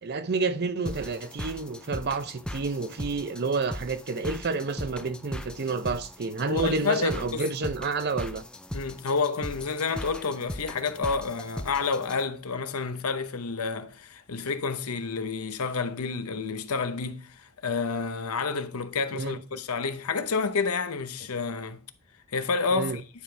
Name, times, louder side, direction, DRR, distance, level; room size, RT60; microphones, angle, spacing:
voice 1, 0.0-8.4 19.1-19.6 22.7-23.0, right 4 dB, 45° right, 0.6 m, -29 dB
sound 1, 0.8-12.2, equal, 5° left, 0.4 m, -39 dB
voice 2, 6.5-7.4 8.7-21.8 22.3-23.0, left 4 dB, 80° left, 0.8 m, -29 dB
10.0 x 5.0 x 3.3 m
head